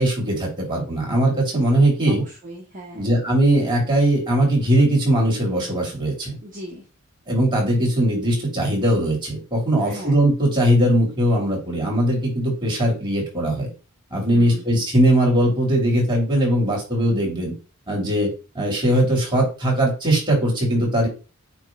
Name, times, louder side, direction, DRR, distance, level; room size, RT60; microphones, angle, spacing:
voice 1, 0.0-2.2 2.9-6.4 7.3-13.7 14.1-17.5 17.9-18.3 18.5-21.1, right 1 dB, 20° right, -2 dB, 3.3 m, -20 dB
voice 2, 2.0-3.1 6.4-6.8 9.8-10.1 14.3-14.7, equal, 40° right, -3 dB, 1.4 m, -38 dB
9.0 x 3.2 x 3.9 m, 0.33 s
head